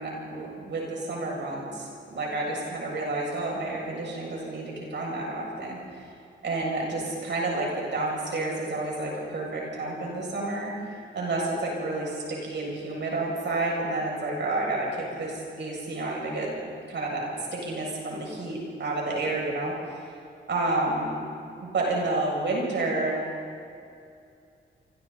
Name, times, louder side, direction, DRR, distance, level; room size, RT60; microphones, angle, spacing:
voice 1, 0.0-6.1 6.4-16.5 16.9-19.7 20.5-21.1 21.6-23.2, right 2 dB, 65° right, -3 dB, 7.6 m, -30 dB
28.5 x 25.5 x 4.3 m, 2.5 s
wide cardioid pair, 170°, 20 cm